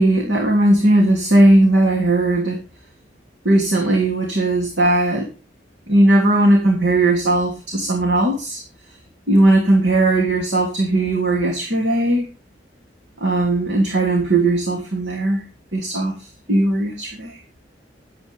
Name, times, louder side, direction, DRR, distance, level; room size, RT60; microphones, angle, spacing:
voice 1, 0.0-2.6 3.4-5.3 5.9-8.6 9.3-12.3 13.2-15.4 15.7-16.1 16.5-17.4, right 1 dB, 80° right, 0 dB, 3.1 m, -17 dB
14.5 x 11.5 x 3.6 m, 0.31 s
head